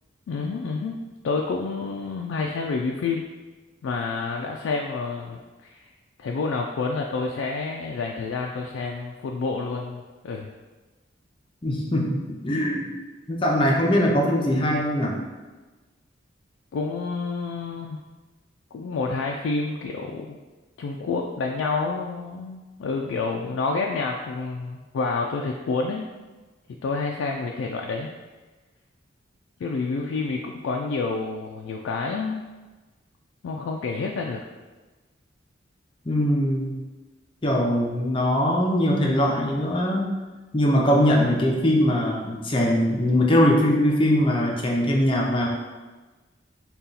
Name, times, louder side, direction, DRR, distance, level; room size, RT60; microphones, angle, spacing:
voice 1, 0.3-1.0 1.2-3.2 3.8-5.9 6.2-10.5 16.7-18.0 18.7-20.4 20.8-26.1 26.8-28.1 29.6-32.4 33.4-34.4, left 4 dB, 90° left, 0 dB, 0.3 m, -28 dB
voice 2, 11.6-12.9 13.3-15.1 36.1-36.7 37.4-40.1 40.5-45.5, equal, 25° left, -1 dB, 0.5 m, -21 dB
4.1 x 2.3 x 3.8 m, 1.2 s
head